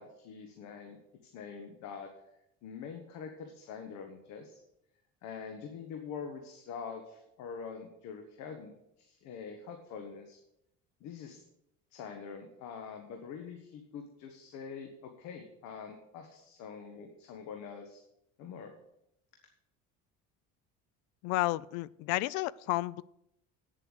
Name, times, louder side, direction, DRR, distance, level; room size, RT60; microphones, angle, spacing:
voice 1, 0.0-2.1 2.6-4.6 5.2-10.4 11.0-11.4 11.9-18.0 18.4-18.7, left 6 dB, 70° left, 5 dB, 1.4 m, -45 dB
voice 2, 21.2-23.0, left 19 dB, 85° left, 22 dB, 0.5 m, -31 dB
9.3 x 7.6 x 6.5 m, 0.81 s
cardioid pair, 140°, 30 cm